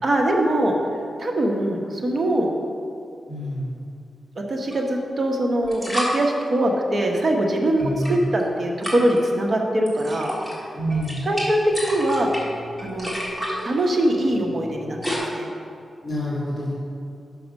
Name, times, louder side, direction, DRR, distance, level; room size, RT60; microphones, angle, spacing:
voice 1, 0.0-0.7 1.2-2.5 4.5-10.3 11.2-12.3 12.8-13.1 13.6-15.5, right 1 dB, 45° right, 1 dB, 1.0 m, -22 dB
voice 2, 3.3-3.6 7.8-8.2 10.7-11.2 16.0-16.7, equal, 30° left, -8 dB, 1.8 m, -27 dB
sound 1, 4.7-4.8 5.6-6.2 7.8-8.4 8.8-9.2 9.9-10.5 10.9-15.2, equal, 5° right, 1.8 m, -31 dB
6.1 x 5.9 x 5.3 m, 2.5 s
wide cardioid pair, 95°, 0 cm